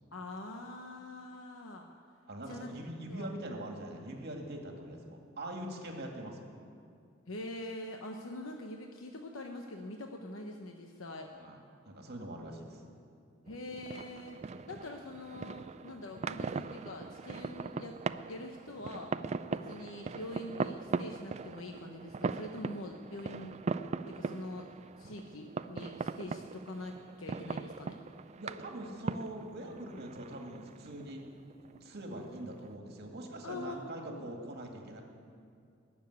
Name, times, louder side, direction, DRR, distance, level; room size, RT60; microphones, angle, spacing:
voice 1, 0.1-1.9 2.5-2.7 3.1-3.3 7.3-11.3 13.5-14.4 14.7-18.0 18.2-19.1 19.5-23.6 24.1-28.0 33.4-34.3, left 1 dB, 80° left, 3 dB, 1.0 m, -44 dB
voice 2, 2.3-6.5 11.3-11.6 11.8-12.8 28.4-31.2 31.8-35.0, right 1 dB, 55° right, 1 dB, 2.2 m, -43 dB
sound 1, 13.5-32.7, right 4 dB, 35° right, 0.3 m, -40 dB
19.0 x 7.3 x 9.5 m, 2.3 s
head